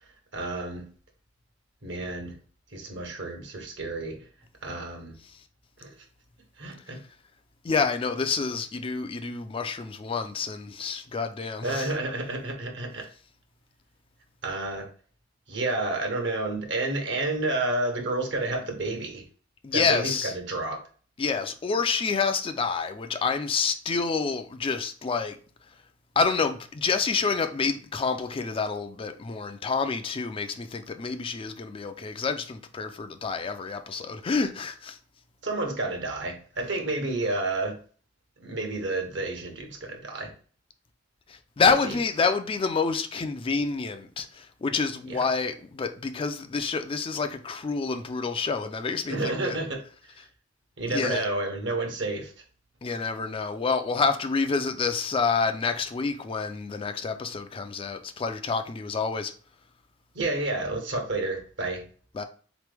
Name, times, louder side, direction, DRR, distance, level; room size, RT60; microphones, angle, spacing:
voice 1, 0.3-0.9 1.8-2.3 2.7-4.2 4.6-5.2 5.8-5.9 6.6-7.0 11.6-13.0 14.4-14.9 15.5-19.2 19.7-20.8 35.4-37.8 38.4-40.3 45.1-45.2 49.1-49.8 50.8-52.3 60.1-61.8, right 2 dB, 65° right, 1.1 m, -30 dB
voice 2, 7.6-11.9 19.6-20.3 21.2-25.4 26.2-35.0 41.3-49.6 50.9-51.2 52.8-59.3 62.1-62.2, left 5 dB, 30° left, 0.3 m, -28 dB
4.1 x 3.0 x 3.3 m
head